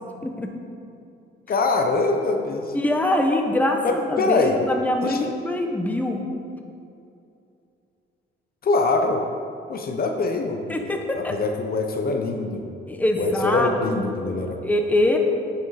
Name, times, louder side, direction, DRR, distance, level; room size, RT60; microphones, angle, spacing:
voice 1, 1.5-2.7 3.8-4.6 5.0-5.2 8.6-9.2 9.7-10.8 11.1-12.6 13.2-14.6, left 3 dB, 50° left, 4 dB, 0.8 m, -23 dB
voice 2, 2.7-6.3 10.7-11.3 12.9-14.1 14.6-15.2, left 1 dB, 10° left, 3 dB, 0.9 m, -23 dB
9.2 x 5.8 x 4.8 m, 2.6 s
cardioid pair, 90°, 20 cm